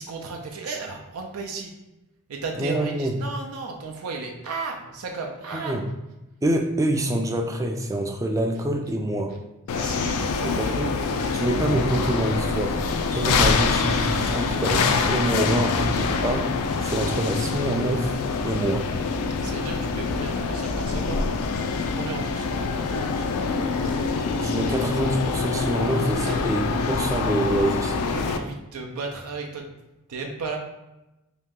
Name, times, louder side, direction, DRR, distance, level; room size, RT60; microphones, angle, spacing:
voice 1, 0.0-1.7 2.3-5.8 9.7-10.9 19.4-21.2 21.8-23.9 26.2-26.4 28.1-29.7 30.1-30.6, right 4 dB, 75° right, 2 dB, 0.5 m, -35 dB
voice 2, 2.6-3.2 5.5-5.8 6.4-9.3 10.4-10.9 11.3-12.8 13.1-18.1 18.4-18.9 24.3-28.0, right 1 dB, 15° right, 3 dB, 0.3 m, -26 dB
sound 1, 9.7-28.4, left 4 dB, 85° left, 0.4 m, -25 dB
3.1 x 2.8 x 3.6 m, 0.97 s
head